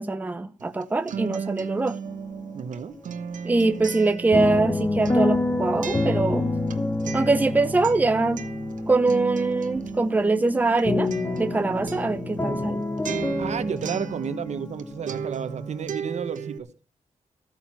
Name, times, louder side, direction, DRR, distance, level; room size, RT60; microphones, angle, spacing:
voice 1, 0.0-1.9 3.4-6.5 7.1-8.4 8.9-11.1 11.4-12.8, right 3 dB, 15° right, 0.7 m, -23 dB
Acoustic guitar, 0.6-14.8 15.1-16.6, right 7 dB, 90° right, 1.2 m, -35 dB
sound 1, 2.0-2.8 3.1-15.8, left 2 dB, 15° left, 0.9 m, -29 dB
voice 2, 2.5-2.9 13.4-16.6, right 7 dB, 60° right, 1.3 m, -32 dB
14.0 x 8.9 x 6.0 m
wide cardioid pair, 155°, 13 cm